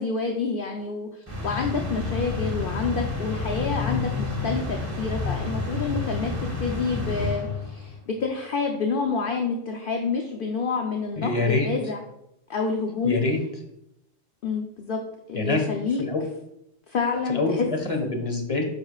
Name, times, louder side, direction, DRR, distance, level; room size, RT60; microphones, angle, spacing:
voice 1, 0.0-12.0 12.5-13.1 14.4-15.0 15.3-16.0 16.9-17.7, left 4 dB, 50° left, 2 dB, 0.9 m, -28 dB
sound 1, 1.3-8.0, left 3 dB, 20° right, 1.2 m, -29 dB
voice 2, 11.2-11.7 13.0-13.4 15.3-15.6 16.0-16.2 17.3-18.6, left 3 dB, 25° left, 3 dB, 1.4 m, -25 dB
10.0 x 6.7 x 2.4 m, 0.81 s
omnidirectional pair, 1.3 m